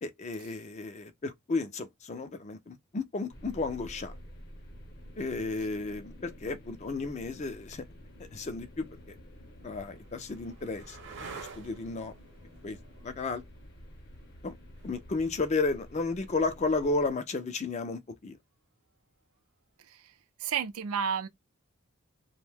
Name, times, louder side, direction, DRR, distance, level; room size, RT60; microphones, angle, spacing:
voice 1, 0.0-4.1 5.2-7.9 8.3-9.2 9.6-12.1 12.6-12.8 13.0-13.4 14.4-14.5 14.8-18.4, left 3 dB, 30° left, 0.4 m, -33 dB
sound 1, 3.3-17.2, equal, 45° left, 0.8 m, -50 dB
sound 2, 8.0-8.1 8.9-16.5 18.9-19.4, right 4 dB, 55° right, 0.8 m, -50 dB
voice 2, 20.4-21.3, right 7 dB, 80° right, 0.4 m, -31 dB
2.6 x 2.1 x 3.3 m
head